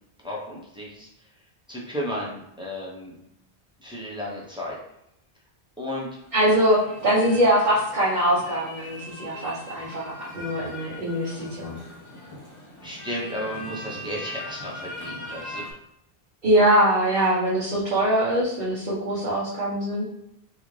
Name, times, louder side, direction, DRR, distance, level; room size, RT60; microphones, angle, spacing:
voice 1, 0.2-1.1 1.7-3.2 3.8-4.8 5.8-6.1 12.8-15.6, equal, 5° right, -4 dB, 0.6 m, -33 dB
sound 1, 6.1-15.7, left 1 dB, 30° left, 0.8 m, -40 dB
voice 2, 6.3-11.8 16.4-20.0, right 1 dB, 45° right, -8 dB, 1.0 m, -22 dB
3.8 x 2.4 x 3.1 m, 0.81 s
omnidirectional pair, 1.1 m